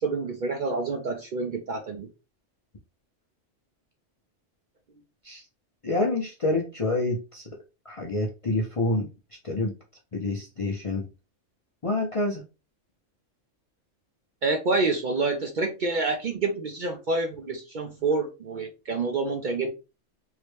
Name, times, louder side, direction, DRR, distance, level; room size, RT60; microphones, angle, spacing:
voice 1, 0.0-2.1 14.4-19.7, right 3 dB, 55° right, 4 dB, 0.6 m, -28 dB
voice 2, 5.8-7.5 7.9-9.1 9.4-9.7 10.1-11.1 11.8-12.4, left 2 dB, 40° left, 0 dB, 0.5 m, -27 dB
3.1 x 2.8 x 3.2 m, 0.29 s
omnidirectional pair, 1.3 m